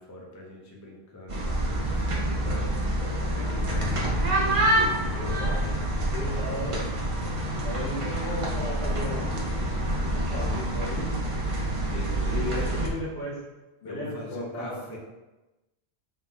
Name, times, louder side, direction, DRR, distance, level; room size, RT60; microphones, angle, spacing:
voice 1, 0.0-4.3 11.9-12.8 13.8-15.0, left 2 dB, 25° left, -1 dB, 0.4 m, -40 dB
sound 1, 1.3-12.9, right 1 dB, 40° right, 0.6 m, -27 dB
voice 2, 5.1-5.8 6.1-6.9 7.6-9.4 10.1-11.1 12.4-13.4 13.8-15.0, left 1 dB, 85° left, -5 dB, 1.5 m, -35 dB
3.9 x 2.1 x 4.5 m, 1.1 s
omnidirectional pair, 1.1 m